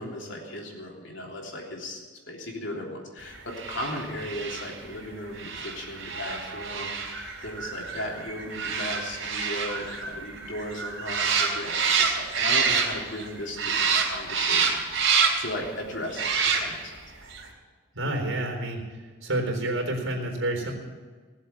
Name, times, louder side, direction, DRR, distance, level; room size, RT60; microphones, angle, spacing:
voice 1, 0.0-2.0 2.3-16.3 16.6-16.9, left 1 dB, 65° left, -1 dB, 3.3 m, -36 dB
sound 1, 3.5-13.3 13.6-15.6 16.1-17.0 17.3-17.4, right 5 dB, 70° right, 3.4 m, -27 dB
voice 2, 17.9-18.8 19.2-20.7, right 1 dB, 85° right, 1 dB, 3.8 m, -28 dB
18.5 x 7.6 x 8.2 m, 1.4 s
head